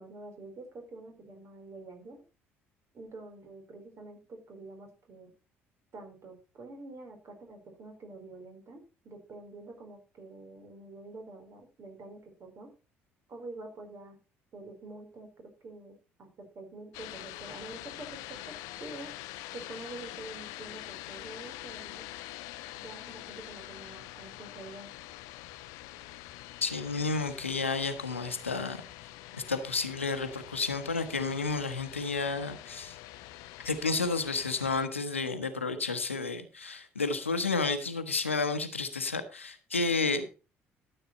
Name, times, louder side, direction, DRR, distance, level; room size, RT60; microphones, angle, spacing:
voice 1, 0.0-2.2 2.9-5.3 5.9-12.7 13.3-14.2 14.5-18.5 18.8-19.1 19.5-22.1 22.8-24.9, right 2 dB, 45° right, 5 dB, 4.3 m, -47 dB
sound 1, 16.9-34.9, left 16 dB, 65° left, 0.6 m, -45 dB
voice 2, 26.6-28.8 29.3-33.0 33.6-40.3, left 4 dB, 90° left, 10 dB, 1.0 m, -31 dB
13.0 x 7.8 x 4.3 m, 0.32 s
figure-of-eight pair, 50°, 7 cm